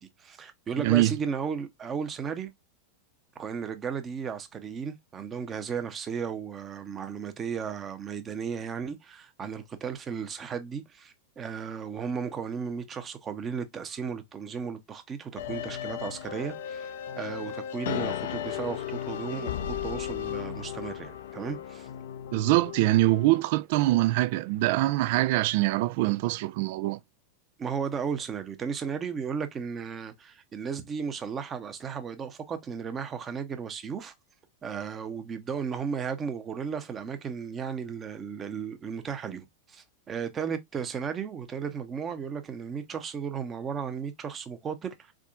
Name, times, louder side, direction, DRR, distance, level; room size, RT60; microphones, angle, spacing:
voice 1, 0.0-2.5 3.4-16.9 17.2-21.9 27.6-34.1 34.6-45.1, right 6 dB, 25° right, 0.8 m, -35 dB
voice 2, 0.8-1.1 22.3-27.0, right 17 dB, 50° right, 0.3 m, -24 dB
sound 1, 15.4-23.4, left 10 dB, 55° left, 0.5 m, -35 dB
4.4 x 3.7 x 2.4 m
figure-of-eight pair, 90°, 0 cm